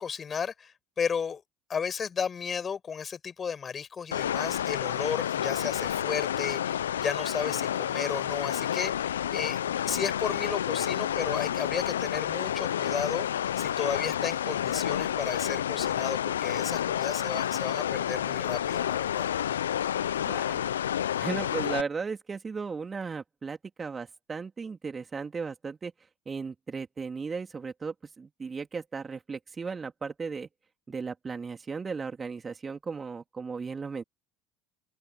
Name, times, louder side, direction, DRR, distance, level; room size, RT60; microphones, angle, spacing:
voice 1, 0.0-1.4 1.7-13.3 13.6-19.3, left 6 dB, 30° left, 6.3 m, -34 dB
sound 1, 4.1-21.8, left 10 dB, 80° left, 0.8 m, -30 dB
voice 2, 20.1-20.8 21.1-25.9 26.2-30.5 30.9-34.0, right 5 dB, 25° right, 3.4 m, -36 dB
open air
hypercardioid pair, 70°, 0 cm